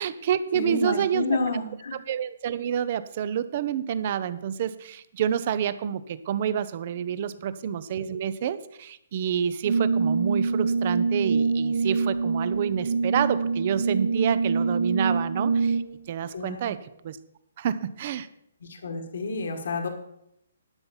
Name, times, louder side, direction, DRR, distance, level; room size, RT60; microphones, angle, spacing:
voice 1, 0.0-1.2 2.1-16.8 17.0-17.2 17.6-18.3, right 9 dB, 40° right, 14 dB, 0.6 m, -28 dB
voice 2, 0.5-2.0 16.3-16.7 18.6-19.9, left 2 dB, 70° left, 5 dB, 1.6 m, -29 dB
Brass instrument, 9.6-16.0, right 4 dB, 70° right, 2.6 m, -25 dB
11.5 x 5.8 x 7.3 m, 0.78 s
hypercardioid pair, 160°, 0 cm